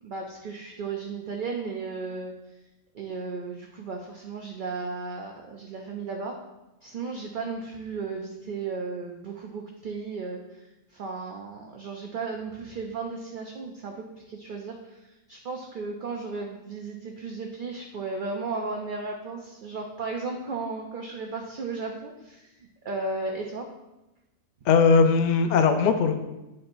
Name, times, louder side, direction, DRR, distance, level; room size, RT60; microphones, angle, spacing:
voice 1, 0.0-2.3 2.9-6.4 6.8-10.6 10.9-15.0 15.3-22.5 22.8-23.7, right 4 dB, 55° right, 1 dB, 0.5 m, -35 dB
voice 2, 24.7-26.2, left 5 dB, 75° left, 7 dB, 0.4 m, -19 dB
9.4 x 4.3 x 2.6 m, 0.99 s
omnidirectional pair, 1.4 m